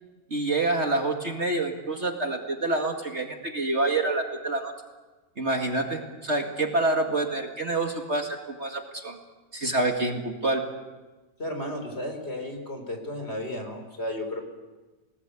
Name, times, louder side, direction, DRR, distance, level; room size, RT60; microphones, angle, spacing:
voice 1, 0.3-4.7 5.4-9.2 9.5-10.6, right 2 dB, 40° right, 3 dB, 2.2 m, -27 dB
voice 2, 11.4-14.4, left 1 dB, 35° left, 5 dB, 4.7 m, -33 dB
29.5 x 19.0 x 8.3 m, 1.2 s
omnidirectional pair, 1.8 m